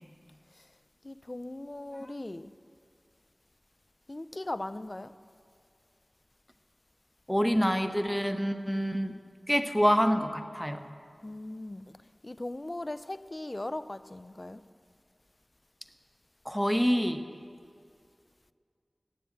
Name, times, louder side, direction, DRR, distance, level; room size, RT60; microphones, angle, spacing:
voice 1, 1.0-2.5 4.1-5.1 11.2-11.9 12.2-14.6, left 1 dB, 40° left, 0.5 m, -38 dB
voice 2, 7.3-9.2 9.5-10.9 16.4-17.2, equal, 5° left, 0.9 m, -27 dB
17.5 x 7.8 x 7.9 m
wide cardioid pair, 45°, 0 cm